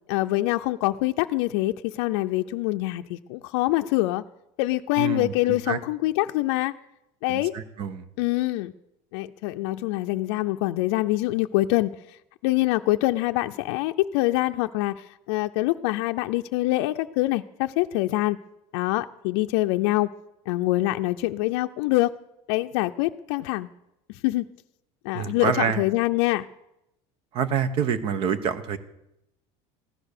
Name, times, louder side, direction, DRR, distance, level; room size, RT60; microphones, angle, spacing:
voice 1, 0.1-4.2 4.6-6.7 7.2-7.5 8.2-8.7 9.1-12.0 12.4-18.4 18.7-20.1 20.5-22.1 22.5-23.7 24.2-24.5 25.0-26.5, left 18 dB, 80° left, 6 dB, 0.5 m, -25 dB
voice 2, 5.0-5.8 7.3-8.0 25.1-25.8 27.3-28.8, right 7 dB, 40° right, 14 dB, 0.9 m, -27 dB
15.0 x 11.0 x 6.6 m, 0.86 s
cardioid pair, 165°, 13 cm